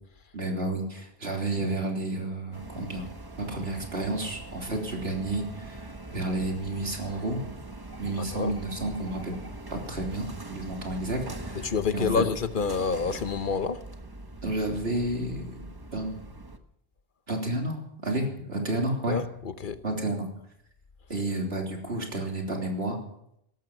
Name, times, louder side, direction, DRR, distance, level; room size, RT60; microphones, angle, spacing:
voice 1, 0.3-3.1 3.4-7.4 8.0-9.4 9.7-12.2 14.4-15.4 15.9-16.1 17.3-19.2 19.8-20.3 21.1-23.0, right 2 dB, 80° right, 3.6 m, -31 dB
sound 1, 2.5-16.6, right 2 dB, 20° right, 1.2 m, -42 dB
voice 2, 11.6-13.8 19.1-19.2 19.6-19.8, left 5 dB, 55° left, 1.0 m, -27 dB
17.5 x 13.0 x 6.0 m
omnidirectional pair, 1.0 m